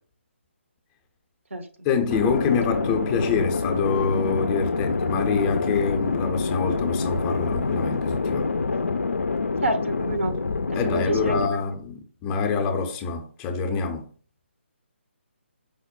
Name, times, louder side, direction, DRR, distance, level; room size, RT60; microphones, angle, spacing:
voice 1, 1.8-8.5 10.7-14.1, left 5 dB, 15° left, 0.5 m, -26 dB
sound 1, 2.1-11.5, left 4 dB, 80° left, 0.3 m, -26 dB
voice 2, 9.6-10.4 10.8-11.4, right 1 dB, 85° right, 0.9 m, -27 dB
4.9 x 2.1 x 4.1 m
figure-of-eight pair, 145°, 7 cm